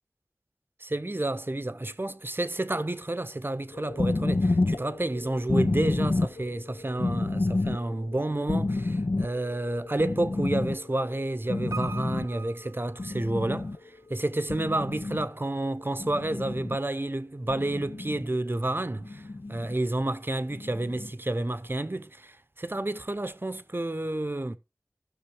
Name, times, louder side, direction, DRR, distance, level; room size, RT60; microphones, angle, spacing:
voice 1, 0.8-13.7 14.1-24.6, right 1 dB, 40° right, 0.7 m, -30 dB
sound 1, 3.7-12.5 12.8-13.9 14.5-15.2 16.0-16.8 17.5-18.2 19.0-19.7 20.5-21.1, left 2 dB, 85° left, 0.6 m, -30 dB
Piano, 11.7-13.8 14.0-14.1, right 5 dB, 70° right, 0.4 m, -42 dB
14.5 x 6.3 x 3.3 m
wide cardioid pair, 45°, 6 cm